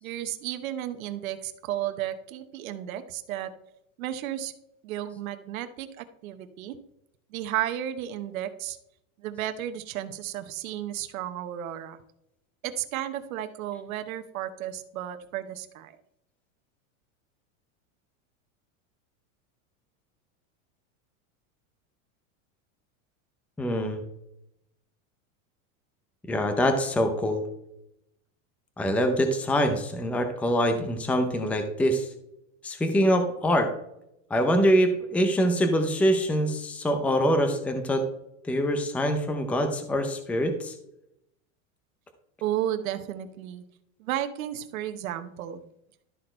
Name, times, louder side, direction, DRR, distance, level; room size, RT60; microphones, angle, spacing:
voice 1, 0.0-3.5 4.0-4.5 4.8-6.8 7.3-8.8 9.2-12.0 12.6-16.0 42.4-43.6 44.0-45.6, right 12 dB, 80° right, 9 dB, 1.0 m, -33 dB
voice 2, 23.6-24.0 26.3-27.4 28.8-32.1 32.6-33.7 34.3-38.0 38.4-40.7, equal, 5° left, 7 dB, 0.6 m, -24 dB
12.5 x 4.3 x 4.4 m, 0.79 s
supercardioid pair, 155°, 41 cm